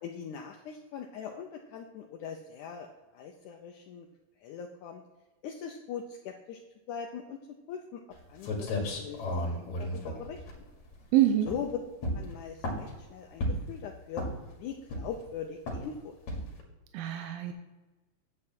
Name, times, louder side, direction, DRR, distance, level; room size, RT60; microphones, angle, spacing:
voice 1, 0.0-4.1 4.4-5.0 5.4-6.6 6.9-7.4 7.7-8.0 8.3-10.7 11.5-11.7 12.1-14.2 14.6-16.1, left 7 dB, 80° left, 3 dB, 1.8 m, -41 dB
sound 1, 8.1-8.2 8.4-11.0 11.4-11.7 12.0-13.0 13.4-13.8 14.1-14.5 14.9-15.3 15.7-15.9 16.3-16.6, left 1 dB, 55° left, 3.0 m, -33 dB
voice 2, 11.1-11.5 16.9-17.5, right 12 dB, 85° right, 6 dB, 2.5 m, -25 dB
9.5 x 7.6 x 4.4 m, 1.2 s
omnidirectional pair, 4.2 m